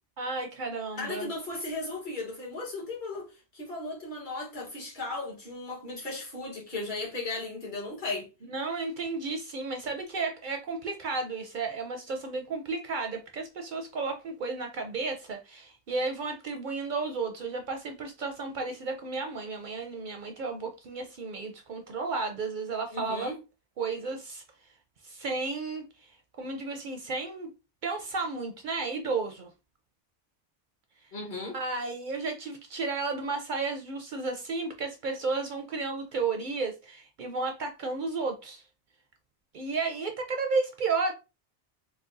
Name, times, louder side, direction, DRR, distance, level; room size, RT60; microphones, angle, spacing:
voice 1, 0.2-1.3 8.5-23.3 23.8-24.4 25.0-25.8 26.4-27.5 27.8-29.5 31.5-38.6 39.5-41.1, right 4 dB, 60° right, 0.6 m, -33 dB
voice 2, 0.9-3.3 3.5-8.3 22.9-23.4 31.1-31.6, left 2 dB, 45° left, 1.4 m, -36 dB
4.0 x 2.1 x 2.5 m
omnidirectional pair, 1.1 m